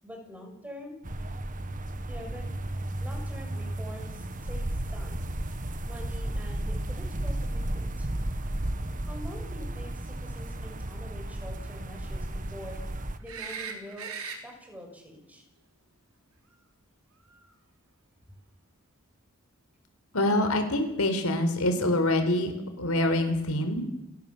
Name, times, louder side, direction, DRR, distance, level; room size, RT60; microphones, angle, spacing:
voice 1, 0.0-1.0 2.1-2.4 3.0-5.2 5.8-8.1 9.1-12.8 13.2-15.4, equal, 5° right, 2 dB, 7.0 m, -45 dB
sound 1, 1.0-13.2, right 1 dB, 40° right, 1.5 m, -34 dB
sound 2, 13.3-14.4 17.3-17.4, right 5 dB, 90° right, 4.0 m, -38 dB
voice 2, 20.1-23.8, left 1 dB, 90° left, 7 dB, 4.5 m, -25 dB
30.0 x 16.5 x 7.5 m, 0.90 s
head